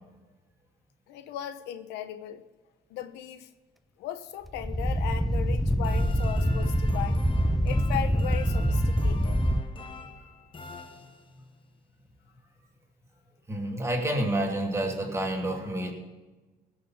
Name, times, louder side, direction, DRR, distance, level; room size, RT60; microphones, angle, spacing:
voice 1, 1.1-2.4 2.9-3.5 4.0-7.2 7.6-9.4, left 11 dB, 90° left, 0.9 m, -37 dB
sound 1, 4.4-9.6, equal, ahead, 0.5 m, -25 dB
sound 2, 5.8-11.6, left 3 dB, 30° left, 1.2 m, -45 dB
voice 2, 13.5-15.9, right 1 dB, 15° right, 2.7 m, -29 dB
17.0 x 6.9 x 5.9 m
cardioid pair, 110°, 17 cm